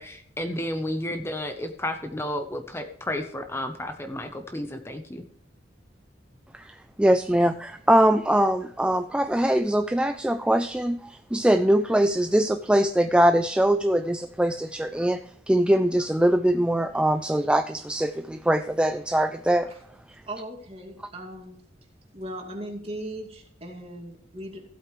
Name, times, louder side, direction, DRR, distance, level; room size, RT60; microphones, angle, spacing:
voice 1, 0.0-5.2, left 1 dB, 15° left, 7 dB, 0.8 m, -32 dB
voice 2, 6.5-19.7, right 1 dB, 5° right, 9 dB, 0.4 m, -22 dB
voice 3, 20.3-21.6 22.1-24.6, right 1 dB, 30° right, 1 dB, 2.3 m, -38 dB
15.5 x 8.3 x 3.2 m, 0.65 s
head